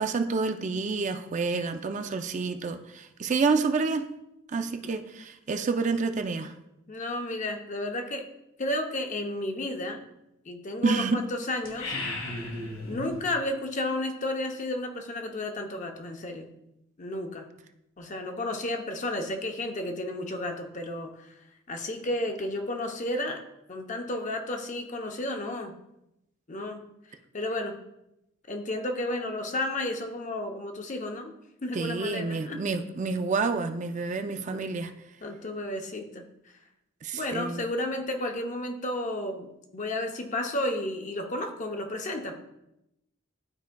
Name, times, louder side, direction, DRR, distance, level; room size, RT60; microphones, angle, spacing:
voice 1, 0.0-4.1 4.5-6.5 10.8-11.2 31.7-34.9 37.0-37.6, right 4 dB, 35° right, 7 dB, 0.4 m, -28 dB
voice 2, 6.9-8.3 8.6-10.0 10.5-11.9 12.9-16.5 17.0-17.5 18.0-21.1 21.7-23.4 23.7-25.7 26.5-26.8 27.3-27.8 28.5-31.3 31.6-32.7 34.5-34.7 35.2-36.2 37.1-42.4, left 1 dB, 35° left, 4 dB, 0.7 m, -32 dB
sound 1, 11.6-13.2, left 2 dB, 85° left, 1.6 m, -35 dB
11.5 x 4.6 x 2.2 m, 0.87 s
head